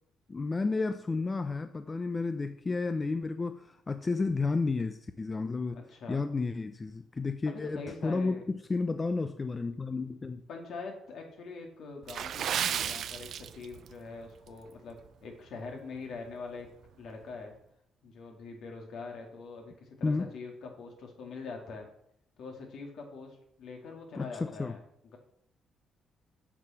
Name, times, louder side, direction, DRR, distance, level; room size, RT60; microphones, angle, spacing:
voice 1, 0.3-5.8 6.1-10.4 20.0-20.3 24.2-24.8, left 3 dB, 25° left, 9 dB, 0.6 m, -32 dB
voice 2, 5.7-6.2 7.5-8.4 10.5-16.7 17.0-17.5 18.0-21.9 22.4-24.8, left 4 dB, 70° left, 2 dB, 2.5 m, -43 dB
Water / Splash splatter, 12.0-13.9 14.2-14.5 15.0-15.3 15.7-15.8, right 9 dB, 65° right, 0.5 m, -33 dB
7.5 x 6.7 x 5.8 m, 0.72 s
cardioid pair, 90°, 0 cm